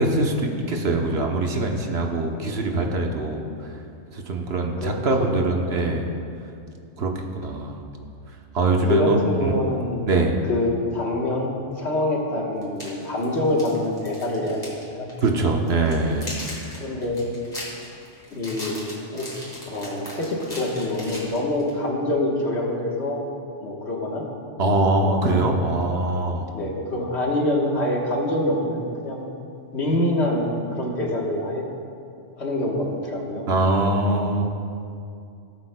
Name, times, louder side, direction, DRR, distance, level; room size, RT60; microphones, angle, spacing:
voice 1, 0.0-3.4 4.1-6.1 7.0-7.8 8.5-9.5 10.1-10.4 15.2-16.4 24.6-26.4 33.5-34.4, right 2 dB, 60° right, 2 dB, 1.1 m, -23 dB
voice 2, 8.8-10.0 10.5-14.6 14.9-15.1 16.8-17.2 18.3-18.8 19.1-19.3 19.7-23.2 23.6-24.2 25.0-25.3 26.5-29.3 29.7-31.6 32.4-33.6, left 1 dB, 60° left, -1 dB, 1.5 m, -25 dB
sound 1, 11.8-11.9 12.6-14.8 15.1-15.3 15.7-21.7, left 1 dB, 20° left, 2.7 m, -38 dB
17.5 x 8.4 x 2.2 m, 2.5 s
omnidirectional pair, 1.3 m